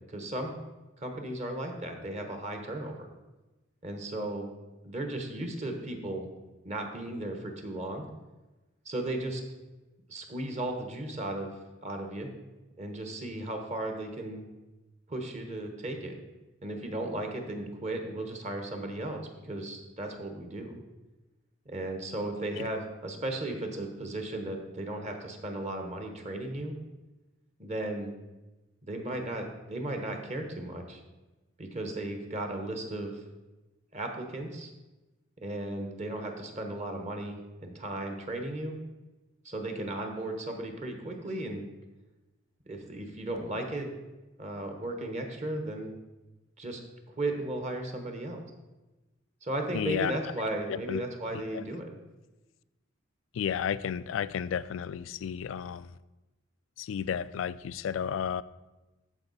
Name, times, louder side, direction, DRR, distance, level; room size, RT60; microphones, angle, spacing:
voice 1, 0.1-0.5 1.0-3.1 3.8-4.5 4.8-6.3 6.6-8.1 8.8-9.4 10.1-11.5 11.8-12.3 12.8-14.5 15.1-16.1 16.6-20.8 21.6-26.7 27.6-28.1 28.8-31.0 31.6-33.2 33.9-34.7 35.4-38.8 39.4-41.6 42.7-43.9 44.4-45.9 46.6-46.8 47.2-48.4 49.4-51.9, right 1 dB, 35° right, 4 dB, 1.1 m, -35 dB
voice 2, 49.7-50.1 50.9-51.0 51.5-51.6 53.3-55.9 56.8-58.4, left 8 dB, 75° left, 17 dB, 0.3 m, -32 dB
13.5 x 4.7 x 4.1 m, 1.1 s
head